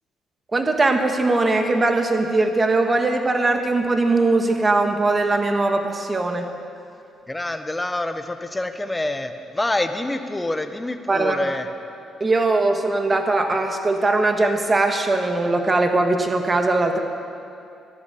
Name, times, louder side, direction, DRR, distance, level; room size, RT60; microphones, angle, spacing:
voice 1, 0.5-6.4 11.1-11.4 12.2-17.0, right 2 dB, 30° right, 5 dB, 1.6 m, -20 dB
voice 2, 7.3-11.7, left 2 dB, 15° left, 8 dB, 1.0 m, -26 dB
14.0 x 11.0 x 7.1 m, 2.5 s
cardioid pair, 85°, 0 cm